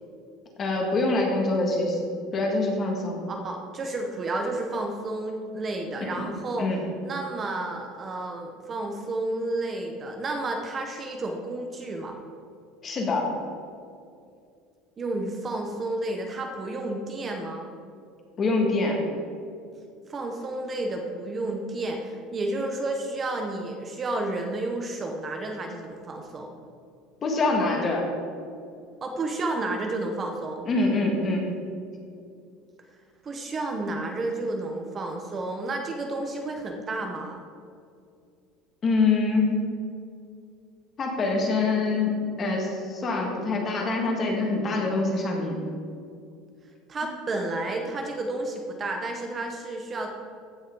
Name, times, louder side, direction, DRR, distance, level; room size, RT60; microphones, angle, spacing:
voice 1, 0.6-3.2 6.0-6.2 6.6-6.8 12.8-13.3 18.4-19.0 27.2-28.1 30.7-31.6 38.8-39.6 41.0-45.6, left 3 dB, 30° left, 1 dB, 1.7 m, -25 dB
voice 2, 3.3-6.7 7.0-12.2 15.0-17.7 20.1-26.5 29.0-30.6 33.2-37.4 46.9-50.1, right 2 dB, 25° right, 3 dB, 0.9 m, -31 dB
15.5 x 6.3 x 3.8 m, 2.4 s
cardioid pair, 150°, 0 cm